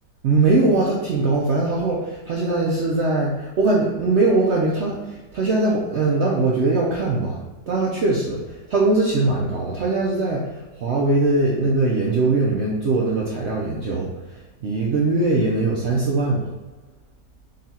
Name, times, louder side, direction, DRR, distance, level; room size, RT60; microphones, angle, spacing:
voice 1, 0.2-16.4, right 2 dB, 75° right, -3 dB, 0.6 m, -21 dB
3.7 x 2.3 x 4.2 m, 1.2 s
omnidirectional pair, 1.8 m